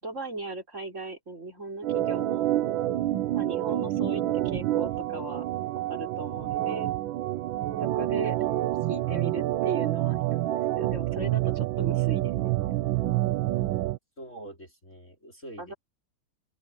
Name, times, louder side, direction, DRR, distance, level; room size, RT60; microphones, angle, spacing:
voice 1, 0.0-2.5 3.3-5.5 5.9-6.9 7.8-8.4 8.9-12.5 15.6-15.7, right 2 dB, 30° right, 4.9 m, -37 dB
Organ, 1.8-14.0, right 14 dB, 70° right, 1.4 m, -27 dB
voice 2, 14.2-15.7, right 1 dB, 35° left, 5.3 m, -45 dB
open air
omnidirectional pair, 2.4 m